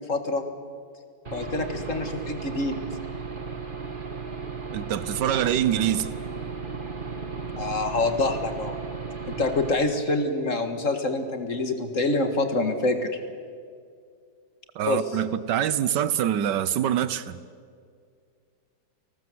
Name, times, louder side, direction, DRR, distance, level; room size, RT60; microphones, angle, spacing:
voice 1, 0.1-0.4 1.3-2.8 7.6-8.8 9.3-13.1 14.9-15.0, left 2 dB, 45° left, 2.1 m, -26 dB
Aircraft / Engine, 1.2-9.7, right 5 dB, 30° right, 2.0 m, -35 dB
voice 2, 4.7-6.1 14.7-17.4, right 10 dB, 80° right, 1.5 m, -25 dB
29.0 x 19.5 x 7.9 m
omnidirectional pair, 1.9 m